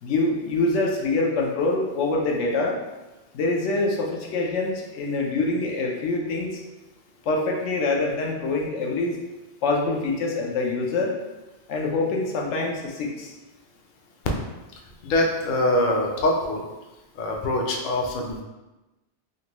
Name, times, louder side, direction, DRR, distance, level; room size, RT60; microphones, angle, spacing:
voice 1, 0.0-2.8 3.3-6.6 7.3-9.2 9.6-11.2 11.7-13.3, left 3 dB, 85° left, 0 dB, 0.9 m, -25 dB
voice 2, 15.0-16.6 17.2-18.4, left 1 dB, 55° left, 1 dB, 0.6 m, -23 dB
3.8 x 2.2 x 2.9 m, 1.1 s
omnidirectional pair, 1.2 m